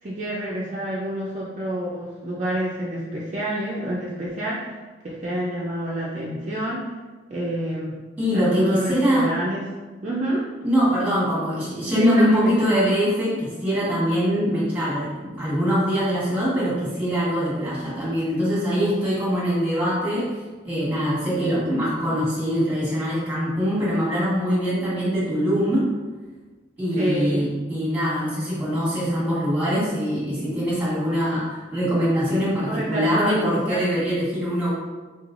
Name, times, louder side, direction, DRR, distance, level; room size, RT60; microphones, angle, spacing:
voice 1, 0.0-4.7 5.0-6.9 7.3-8.0 8.3-9.6 10.0-10.5 12.0-12.5 27.0-27.5 32.7-33.8, right 1 dB, 35° right, -6 dB, 0.4 m, -28 dB
voice 2, 8.2-9.2 10.6-25.9 26.8-34.7, equal, 10° right, -8 dB, 1.3 m, -23 dB
4.1 x 3.1 x 2.5 m, 1.3 s
head